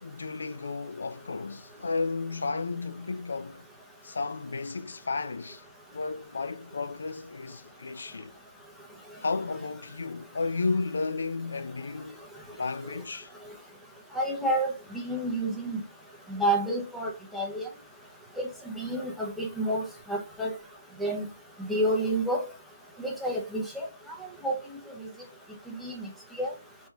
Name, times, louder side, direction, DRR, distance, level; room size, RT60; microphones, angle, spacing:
voice 1, 0.0-3.6 4.0-5.6 5.9-8.3 9.2-13.3, left 3 dB, 70° left, 0.4 m, -33 dB
voice 2, 14.1-15.8 16.3-17.7 18.4-18.5 18.7-19.8 20.1-20.5 21.0-21.2 21.6-22.4 23.0-23.9 24.4-24.5 25.8-26.1 26.4-26.5, right 1 dB, ahead, 0.9 m, -29 dB
4.2 x 3.5 x 2.9 m
figure-of-eight pair, 150°, 0 cm